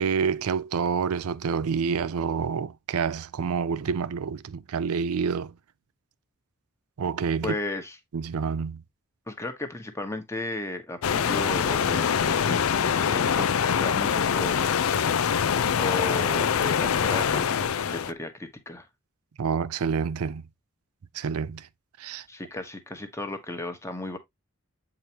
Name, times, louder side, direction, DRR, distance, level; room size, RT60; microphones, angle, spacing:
voice 1, 0.0-5.5 7.0-7.6 8.1-8.8 19.4-20.4 21.1-21.7 22.0-22.2, right 6 dB, 85° right, 0.5 m, -28 dB
voice 2, 7.4-8.0 9.3-14.7 15.8-18.9 22.3-24.2, left 2 dB, 15° left, 1.1 m, -34 dB
sound 1, 11.0-18.1, left 7 dB, 70° left, 0.5 m, -24 dB
8.1 x 4.8 x 2.8 m
head